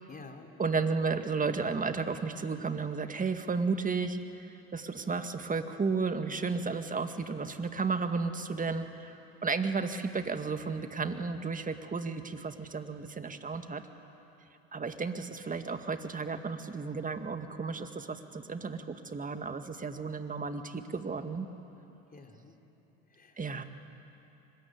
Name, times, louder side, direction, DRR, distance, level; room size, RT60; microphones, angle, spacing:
voice 1, 0.1-0.5 22.1-22.6 23.1-23.4, left 4 dB, 25° left, 3 dB, 4.0 m, -50 dB
voice 2, 0.6-4.2 4.7-9.1 9.4-13.8 14.7-21.5 23.4-23.6, right 4 dB, 25° right, 8 dB, 2.0 m, -33 dB
25.0 x 21.5 x 9.4 m, 2.9 s
hypercardioid pair, 70°, 33 cm